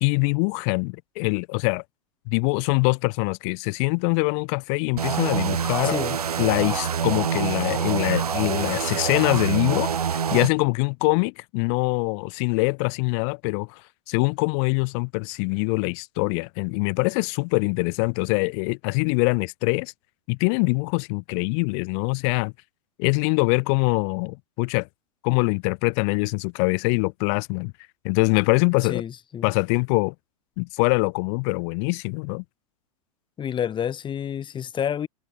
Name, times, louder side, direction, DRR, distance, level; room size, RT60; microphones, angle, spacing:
voice 1, 0.0-1.8 2.3-6.0 6.4-9.9 10.3-13.8 14.1-19.9 20.3-22.5 23.0-24.9 25.2-27.7 28.0-29.0 29.4-30.1 30.6-32.4, left 36 dB, 50° left, 1.4 m, -23 dB
sound 1, 5.0-10.5, right 7 dB, 90° right, 1.3 m, -26 dB
voice 2, 5.8-6.2 28.9-29.5 33.4-35.1, left 9 dB, 25° left, 4.2 m, -29 dB
hypercardioid pair, 110°, 19 cm